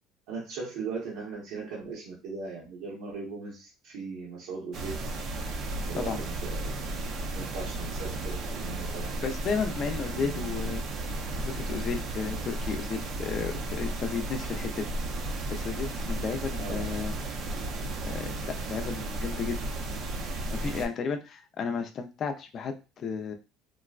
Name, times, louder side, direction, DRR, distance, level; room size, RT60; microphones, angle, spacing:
voice 1, 0.3-5.0 5.9-9.1 10.1-10.7 16.5-16.9, right 4 dB, 80° right, -6 dB, 1.0 m, -39 dB
sound 1, 4.7-20.9, right 2 dB, 55° right, 0.6 m, -34 dB
voice 2, 9.2-10.8 11.4-14.9 15.5-17.1 18.0-19.6 20.5-23.3, left 5 dB, 45° left, 6 dB, 0.5 m, -33 dB
3.8 x 2.1 x 2.4 m, 0.30 s
cardioid pair, 115°, 0 cm